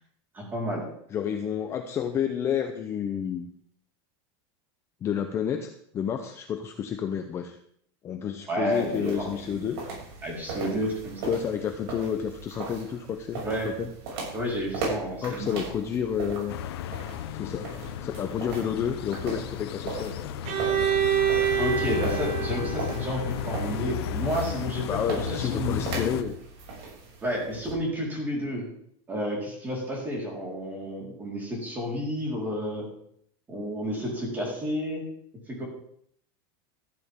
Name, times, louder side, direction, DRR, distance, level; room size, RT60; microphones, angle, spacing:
voice 1, 0.3-0.8 8.5-9.6 10.2-11.2 13.4-13.7 14.3-15.5 21.6-25.8 27.2-28.7 29.1-32.9 33.5-35.1 35.5-35.6, equal, 15° right, -3 dB, 4.4 m, -31 dB
voice 2, 1.1-3.5 5.0-7.6 8.0-9.8 11.2-13.9 15.2-16.6 17.3-17.7 18.0-20.3 24.9-26.4, left 8 dB, 20° left, 5 dB, 0.7 m, -30 dB
sound 1, 8.7-27.7, right 3 dB, 70° right, 6.8 m, -38 dB
sound 2, 16.5-26.2, left 9 dB, 70° left, 1.1 m, -34 dB
Bowed string instrument, 20.4-24.3, right 10 dB, 40° right, 1.4 m, -28 dB
14.0 x 12.5 x 3.7 m, 0.67 s
supercardioid pair, 175°, 14 cm